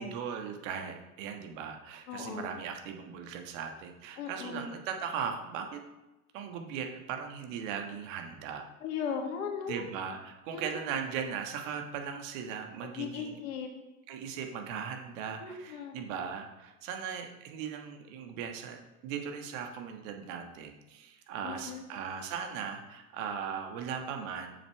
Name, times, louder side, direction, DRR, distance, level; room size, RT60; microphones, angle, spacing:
voice 1, 0.0-5.8 6.3-8.7 9.7-13.4 14.1-24.5, right 7 dB, 65° right, 4 dB, 1.6 m, -38 dB
voice 2, 2.1-2.5 4.2-4.7 8.8-9.9 10.5-10.9 13.0-13.7 15.4-16.0 21.4-21.8, left 6 dB, 75° left, 3 dB, 1.9 m, -37 dB
7.2 x 6.6 x 4.6 m, 1.0 s
hypercardioid pair, 85°, 42 cm